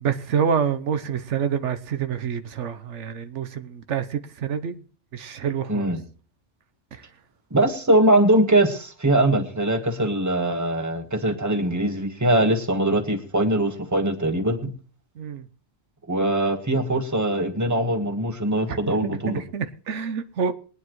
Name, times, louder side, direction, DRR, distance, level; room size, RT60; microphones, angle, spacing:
voice 1, 0.0-4.8 5.1-5.9 15.2-15.4 19.0-20.5, right 7 dB, 80° right, 1.1 m, -27 dB
voice 2, 5.7-6.0 7.5-14.7 16.1-19.4, right 1 dB, 15° right, 1.3 m, -22 dB
21.5 x 9.6 x 3.1 m
omnidirectional pair, 1.2 m